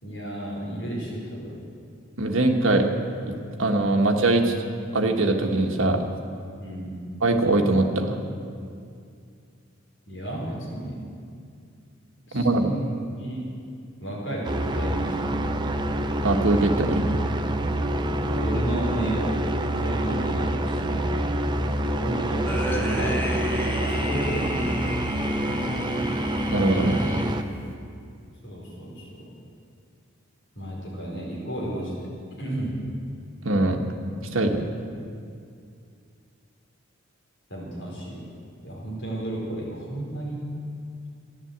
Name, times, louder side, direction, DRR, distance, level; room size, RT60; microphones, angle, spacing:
voice 1, 0.0-1.6 6.6-7.0 10.1-11.0 12.3-12.9 13.2-13.5 14.0-15.7 17.9-21.1 22.0-24.9 25.4-25.8 28.4-29.3 30.5-32.1 32.4-32.9 37.5-38.3 38.6-40.6, right 1 dB, 60° left, -4 dB, 4.6 m, -33 dB
voice 2, 2.2-2.9 3.3-4.5 4.9-6.0 7.2-8.2 12.3-12.7 16.2-17.1 26.5-27.0 33.4-33.8 34.3-34.6, right 2 dB, 75° right, 3 dB, 1.4 m, -22 dB
sound 1, 14.4-27.4, right 1 dB, 20° right, 0.6 m, -27 dB
sound 2, 22.5-27.7, equal, 10° left, 1.1 m, -31 dB
13.5 x 11.0 x 8.0 m, 2.4 s
head